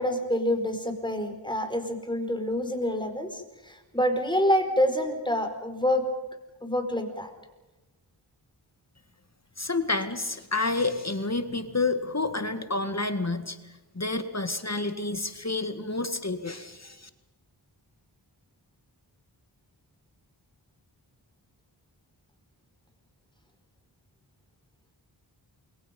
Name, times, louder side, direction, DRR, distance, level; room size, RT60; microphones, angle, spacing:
voice 1, 0.0-6.0 6.6-7.3, left 1 dB, 10° left, 5 dB, 5.1 m, -27 dB
voice 2, 9.6-13.6 13.9-17.1, left 3 dB, 35° left, 9 dB, 1.9 m, -29 dB
28.5 x 23.5 x 5.5 m, 1.1 s
cardioid pair, 45°, 46 cm